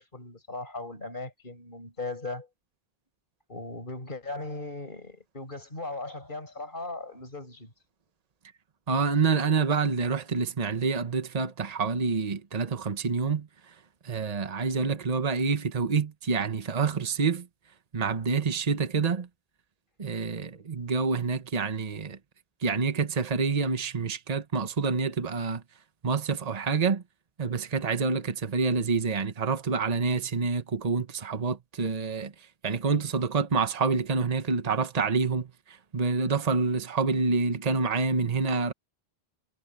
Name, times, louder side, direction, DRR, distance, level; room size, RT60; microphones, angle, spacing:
voice 1, 0.0-2.5 3.5-7.7, left 2 dB, 55° left, 5.8 m, -38 dB
voice 2, 8.9-13.5 14.0-17.5 17.9-19.3 20.0-22.2 22.6-25.6 26.0-27.0 27.4-32.3 32.6-35.5 35.9-38.7, right 4 dB, 40° right, 1.2 m, -27 dB
omnidirectional pair, 1.0 m